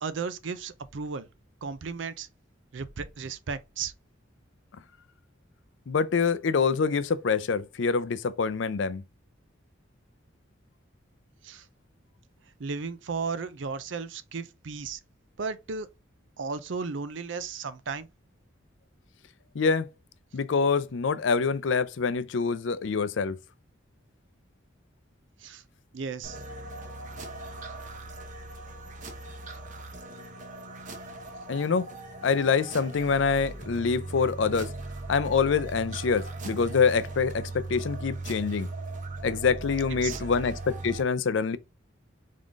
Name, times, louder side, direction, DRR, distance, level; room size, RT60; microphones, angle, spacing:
voice 1, 0.0-1.3 1.6-2.3 2.7-3.9 11.4-11.6 12.6-15.0 15.4-15.9 16.4-18.1 25.4-25.6 25.9-26.4 40.0-40.3, right 5 dB, 70° right, 0.5 m, -34 dB
voice 2, 5.9-9.0 19.5-19.9 20.3-23.4 31.5-31.9 32.2-34.7 35.1-38.7 39.2-41.6, left 5 dB, 70° left, 0.5 m, -25 dB
sound 1, 26.2-41.0, right 2 dB, 40° right, 0.9 m, -39 dB
3.7 x 3.7 x 3.5 m
head